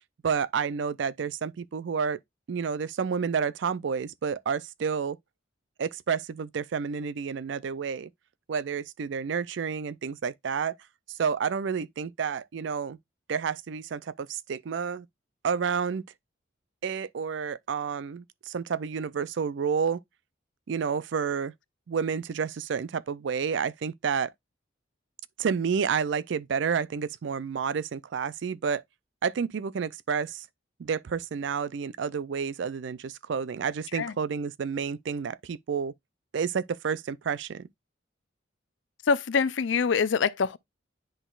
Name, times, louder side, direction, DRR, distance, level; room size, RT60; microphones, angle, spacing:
voice 1, 0.2-2.2 2.5-5.2 5.8-8.1 8.5-10.7 11.1-13.0 13.3-15.1 15.4-16.0 16.8-20.0 20.7-21.5 21.9-24.3 25.4-28.8 29.2-30.4 30.8-35.9 36.3-37.7, right 6 dB, 65° right, 0.4 m, -30 dB
voice 2, 39.1-40.6, left 5 dB, 70° left, 0.4 m, -25 dB
10.0 x 4.0 x 2.3 m
head